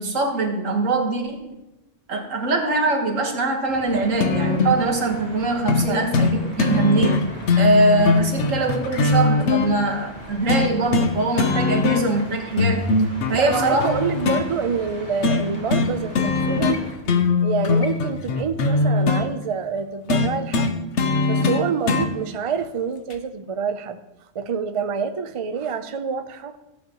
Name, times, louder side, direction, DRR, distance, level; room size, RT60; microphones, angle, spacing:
voice 1, 0.0-1.4 2.1-7.3 7.6-12.8 13.3-13.8, right 3 dB, 85° right, 1 dB, 1.8 m, -22 dB
sound 1, 3.7-16.9, left 1 dB, 10° left, 3.1 m, -40 dB
sound 2, 4.2-4.8 5.7-5.9 6.1-6.3 6.6-9.7 10.5-11.1 11.4-12.2 12.6-14.4 15.2-15.4 15.7-15.9 16.2-16.8 17.1-19.3 20.1-22.1 23.1-23.2, left 4 dB, 65° left, 1.1 m, -20 dB
voice 2, 13.3-16.9 17.4-20.7 21.2-24.0 24.3-26.6, right 6 dB, 45° right, 8 dB, 0.4 m, -27 dB
15.0 x 8.2 x 3.0 m, 0.98 s
omnidirectional pair, 1.3 m